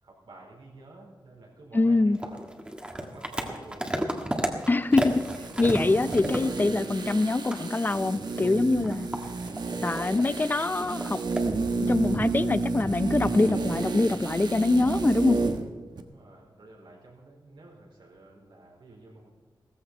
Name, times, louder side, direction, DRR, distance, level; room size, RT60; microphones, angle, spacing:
voice 1, 0.0-2.5 3.0-4.0 16.0-19.3, right 2 dB, 80° right, -1 dB, 4.6 m, -51 dB
voice 2, 1.7-2.2 4.7-5.2 5.6-9.1 9.8-11.2 11.9-15.4, left 2 dB, 25° left, 14 dB, 0.5 m, -24 dB
sound 1, 2.1-7.2 7.5-7.7 8.2-10.3 10.8-11.5, right 1 dB, 10° right, 1.6 m, -33 dB
sound 2, 5.0-15.7 16.0-16.1, right 3 dB, 60° right, 1.2 m, -31 dB
16.0 x 15.0 x 4.4 m, 1.4 s
wide cardioid pair, 155°, 8 cm